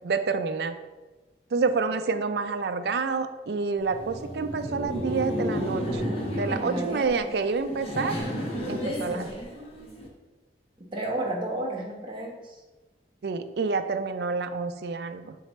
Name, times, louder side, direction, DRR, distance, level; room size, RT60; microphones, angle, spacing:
voice 1, 0.0-0.8 1.5-6.0 6.3-8.2 8.7-9.4 13.2-15.4, right 4 dB, 65° right, 9 dB, 0.4 m, -28 dB
Laughter, 3.8-10.1, equal, 35° left, 0.9 m, -32 dB
voice 2, 6.6-7.4 9.1-9.3 10.9-12.6, right 1 dB, 30° right, -2 dB, 1.1 m, -33 dB
6.6 x 4.6 x 3.1 m, 1.2 s
head